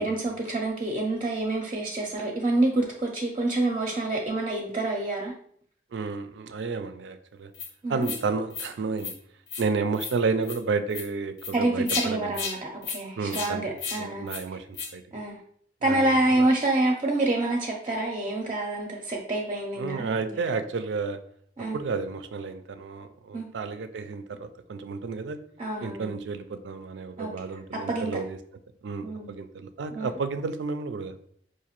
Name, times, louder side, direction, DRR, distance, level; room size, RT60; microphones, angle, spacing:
voice 1, 0.0-5.3 7.8-8.1 11.5-14.3 15.1-15.4 15.8-20.4 21.6-21.8 23.3-23.5 25.6-26.1 27.2-27.3 27.7-28.2 29.0-29.3 29.9-30.1, right 2 dB, 30° right, 1 dB, 0.5 m, -27 dB
voice 2, 5.9-7.5 7.9-9.1 9.6-12.5 13.2-15.2 15.8-16.5 19.8-21.2 21.7-25.4 25.8-28.4 28.8-31.2, right 4 dB, 90° right, 10 dB, 0.4 m, -31 dB
sound 1, 7.5-7.7 8.0-8.2 8.5-8.7 9.0-9.2 9.5-9.7 9.9-10.2 10.4-10.6 10.9-11.1 11.4-11.5 11.9-12.1 12.3-12.6 12.8-13.0 13.3-13.5 13.8-14.0 14.3-14.4 14.7-14.9, left 5 dB, 70° left, 0.7 m, -33 dB
4.8 x 2.5 x 2.9 m, 0.63 s
head